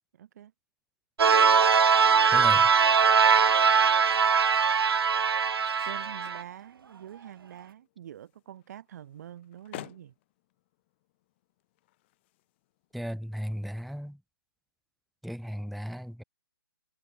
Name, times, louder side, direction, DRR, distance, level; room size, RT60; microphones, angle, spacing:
voice 1, 0.1-0.5 5.8-10.1, right 10 dB, 45° right, 2.1 m, -45 dB
sound 1, 1.2-6.4, right 6 dB, 85° right, 0.4 m, -21 dB
sound 2, 1.4-7.7, right 6 dB, 65° right, 2.0 m, -53 dB
voice 2, 2.3-2.7 12.9-14.2 15.2-16.2, equal, ahead, 0.3 m, -36 dB
sound 3, 2.9-13.2, left 19 dB, 30° left, 1.3 m, -53 dB
figure-of-eight pair, 145°, 13 cm